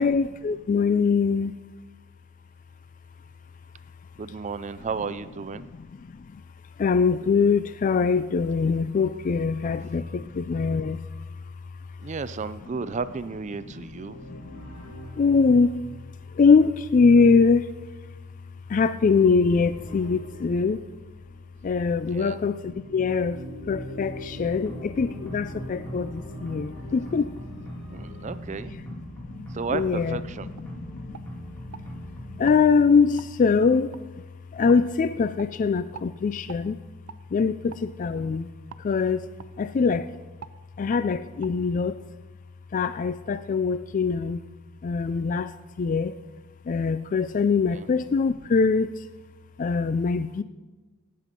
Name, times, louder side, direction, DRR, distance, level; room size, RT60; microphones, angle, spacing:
voice 1, 0.0-1.6 6.2-6.4 6.8-11.2 14.3-15.8 16.3-17.7 18.7-20.8 21.6-23.4 23.7-27.4 29.2-29.3 29.7-30.2 30.7-31.2 32.4-34.0 34.5-36.8 37.3-38.5 38.8-39.3 39.6-40.1 40.8-42.0 42.7-44.5 44.8-45.5 45.8-46.2 46.7-49.1 49.6-50.4, left 5 dB, 40° left, 13 dB, 0.3 m, -23 dB
voice 2, 4.2-5.7 9.6-9.8 12.0-14.3 22.1-22.4 27.9-28.7 29.5-30.5 47.7-47.9, right 5 dB, 35° right, 14 dB, 0.4 m, -33 dB
sound 1, 13.4-21.9 22.5-28.2, equal, 75° left, 4.7 m, -44 dB
sound 2, 24.4-32.5, equal, 10° left, 2.3 m, -40 dB
sound 3, 30.0-30.1 30.6-30.7 31.1-31.9 32.4-32.6 33.2-33.3 33.9-34.0 34.7-34.8 35.4-35.5 35.9-36.1 36.5-36.6 37.1-37.2 37.7-37.9 38.7-38.9 39.4-39.5 39.8-40.0 40.4-40.6 40.9-41.1 41.4-41.5, right 6 dB, 85° right, 0.5 m, -43 dB
17.5 x 7.6 x 5.2 m, 1.2 s
head